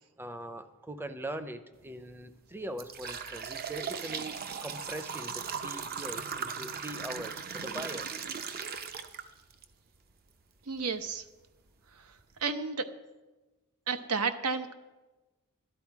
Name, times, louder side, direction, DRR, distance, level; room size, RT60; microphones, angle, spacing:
voice 1, 0.2-8.1, right 1 dB, 10° right, 10 dB, 0.6 m, -41 dB
sound 1, 1.8-2.0 2.5-9.6 10.1-10.2 11.1-11.2 11.7-11.8 12.2-12.4, right 6 dB, 45° right, 0.7 m, -38 dB
voice 2, 10.7-11.2 11.9-12.1 12.4-12.9 13.9-14.7, right 5 dB, 85° right, 9 dB, 1.0 m, -32 dB
12.5 x 12.0 x 4.8 m, 1.1 s
head